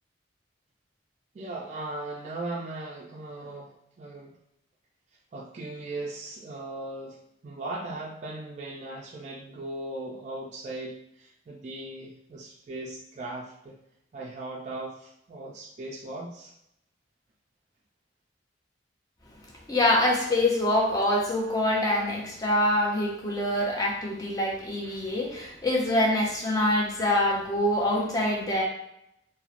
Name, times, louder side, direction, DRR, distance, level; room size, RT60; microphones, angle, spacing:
voice 1, 1.3-3.7 4.0-4.3 5.3-7.2 7.4-13.8 14.1-16.5, right 2 dB, 40° right, -3 dB, 0.3 m, -38 dB
voice 2, 19.7-28.6, left 1 dB, 20° left, -2 dB, 0.5 m, -25 dB
2.9 x 2.0 x 2.4 m, 0.76 s
head